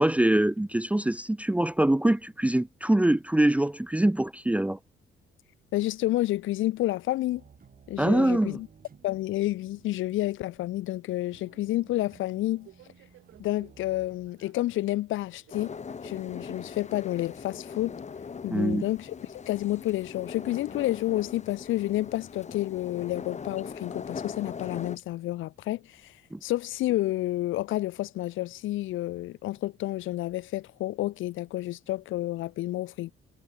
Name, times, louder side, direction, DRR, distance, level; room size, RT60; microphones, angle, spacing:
voice 1, 0.0-4.8 8.0-8.6 18.5-18.9 26.3-26.4, right 1 dB, 5° right, 0.7 m, -24 dB
voice 2, 5.7-7.4 7.9-8.7 9.0-12.7 13.4-15.8 16.0-18.0 18.4-26.1 26.4-33.1, left 16 dB, 80° left, 0.7 m, -30 dB
sound 1, 7.2-14.3, right 7 dB, 45° right, 4.3 m, -57 dB
Subway metro underground, 11.5-21.3, right 14 dB, 85° right, 5.5 m, -60 dB
sound 2, 15.5-25.0, left 6 dB, 35° left, 1.6 m, -41 dB
cardioid pair, 90°, 20 cm